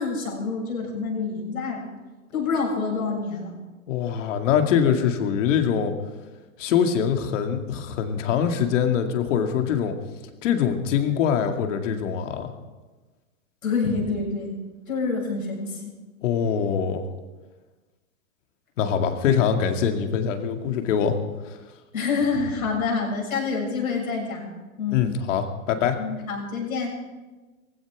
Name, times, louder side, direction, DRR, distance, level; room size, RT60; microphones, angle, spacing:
voice 1, 0.0-1.8 2.3-3.5 13.6-14.6 14.9-15.8 21.9-24.5 24.8-25.0 26.0-27.0, left 4 dB, 90° left, -2 dB, 7.1 m, -27 dB
voice 2, 3.9-5.9 6.6-10.0 10.4-12.5 16.2-17.1 18.8-21.2 21.5-21.6 24.9-26.0, left 8 dB, 60° left, 5 dB, 2.3 m, -23 dB
18.5 x 16.0 x 4.9 m, 1.2 s
hypercardioid pair, 130°, 42 cm